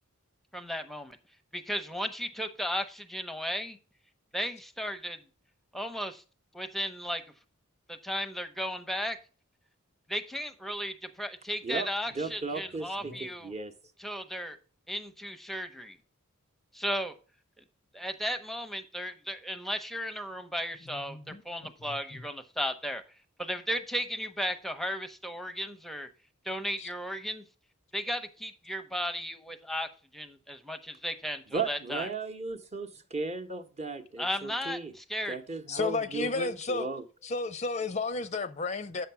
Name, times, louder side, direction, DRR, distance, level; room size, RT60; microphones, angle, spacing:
voice 1, 0.5-1.2 1.5-3.8 4.3-5.2 5.7-6.2 6.5-7.2 7.9-9.2 10.1-13.5 14.0-14.6 14.9-16.0 16.7-17.1 17.9-23.0 23.4-26.1 26.4-27.4 27.9-32.1 34.2-35.4, equal, ahead, 0.8 m, -35 dB
voice 2, 12.1-13.7 31.5-34.9 35.3-37.0, right 4 dB, 30° right, 0.9 m, -36 dB
voice 3, 20.9-21.7 26.8-26.9 35.7-36.9 37.2-39.1, left 3 dB, 30° left, 0.5 m, -33 dB
7.7 x 5.9 x 5.7 m
head